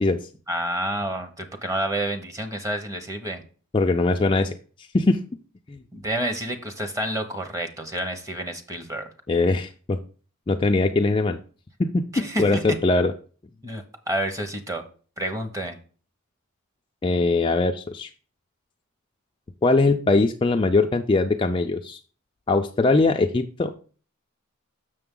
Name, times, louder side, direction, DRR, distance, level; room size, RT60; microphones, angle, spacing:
voice 1, 0.5-3.4 5.9-9.1 12.1-12.6 13.6-14.8 15.2-15.8, right 1 dB, 15° right, 7 dB, 0.9 m, -29 dB
voice 2, 3.7-4.6 4.9-5.2 5.7-5.8 9.3-10.0 10.5-11.4 11.8-13.1 17.0-18.1 19.6-22.0 22.5-23.7, left 3 dB, 25° left, 4 dB, 0.3 m, -21 dB
6.8 x 6.4 x 3.7 m, 0.40 s
head